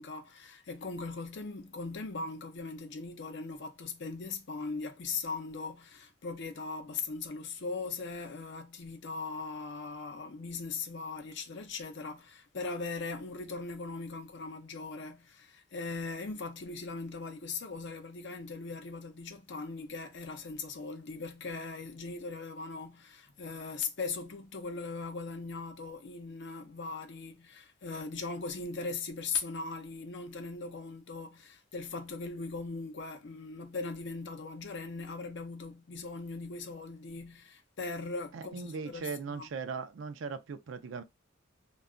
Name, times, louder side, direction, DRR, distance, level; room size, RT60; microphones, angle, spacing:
voice 1, 0.0-39.5, left 4 dB, 60° left, 0.6 m, -39 dB
voice 2, 38.3-41.0, right 5 dB, 65° right, 0.4 m, -39 dB
2.3 x 2.1 x 3.7 m
head